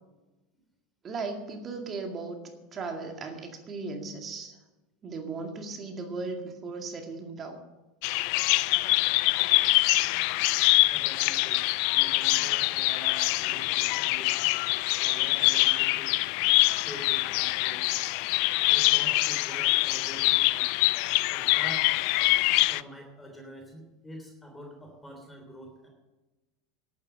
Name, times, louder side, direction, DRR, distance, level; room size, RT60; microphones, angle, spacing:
voice 1, 1.0-4.6 5.0-7.6, right 4 dB, 35° right, 4 dB, 2.1 m, -37 dB
Bird vocalization bird call bird song, 8.0-22.8, left 21 dB, 60° left, 0.3 m, -24 dB
voice 2, 10.9-11.6 11.9-14.3 15.0-16.2 16.8-18.0 18.7-20.7 21.3-21.9 22.3-22.4 22.7-25.9, equal, 10° left, 3 dB, 3.2 m, -45 dB
11.0 x 9.2 x 7.9 m, 1.1 s
hypercardioid pair, 85°, 0 cm